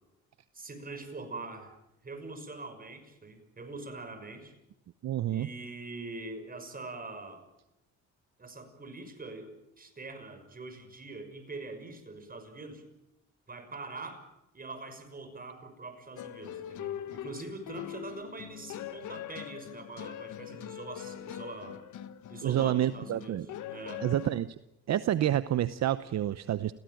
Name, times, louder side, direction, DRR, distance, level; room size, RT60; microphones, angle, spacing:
voice 1, 0.5-1.7 2.0-4.5 5.3-7.4 8.4-12.9 13.5-14.2 14.5-21.8 22.3-24.1, right 3 dB, 30° right, 7 dB, 6.4 m, -43 dB
voice 2, 5.0-5.5 22.4-23.5 24.0-24.5 24.9-26.7, right 12 dB, 60° right, 15 dB, 0.8 m, -28 dB
sound 1, 16.2-24.4, left 11 dB, 80° left, 1.5 m, -42 dB
29.0 x 17.5 x 9.3 m, 0.91 s
cardioid pair, 90°, 30 cm